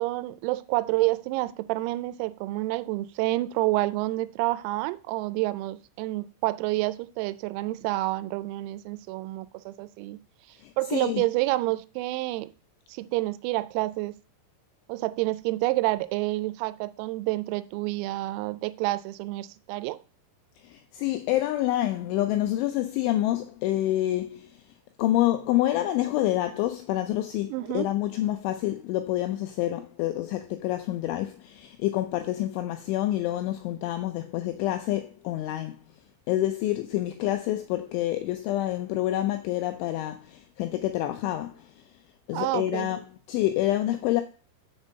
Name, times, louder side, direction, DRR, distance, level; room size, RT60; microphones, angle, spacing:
voice 1, 0.0-10.2 10.8-12.5 12.9-14.1 14.9-20.0 27.5-27.9 42.3-42.9, right 19 dB, 90° right, 3.3 m, -28 dB
voice 2, 10.6-11.2 20.6-24.5 25.0-35.8 36.3-41.8 42.3-43.0 43.3-44.2, left 14 dB, 85° left, 2.7 m, -27 dB
7.1 x 5.3 x 6.5 m
omnidirectional pair, 6.0 m